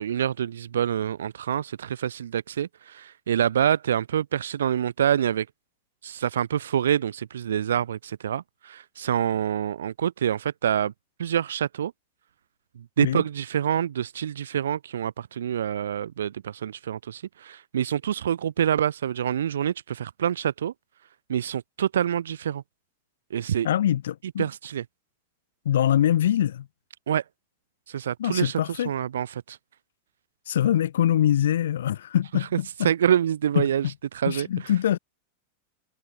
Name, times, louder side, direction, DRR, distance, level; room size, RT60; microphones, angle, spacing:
voice 1, 0.0-5.5 6.0-10.9 11.2-11.9 13.0-20.7 21.3-22.6 23.3-23.7 24.4-24.8 27.1-27.2 27.9-28.6 28.9-29.6 32.8-33.8 34.1-34.5, right 9 dB, 85° right, 2.1 m, -26 dB
voice 2, 23.6-24.5 25.6-26.7 28.2-28.9 30.5-32.9 33.5-33.9 34.3-35.0, left 11 dB, 80° left, 4.7 m, -24 dB
hypercardioid pair, 120°, 0 cm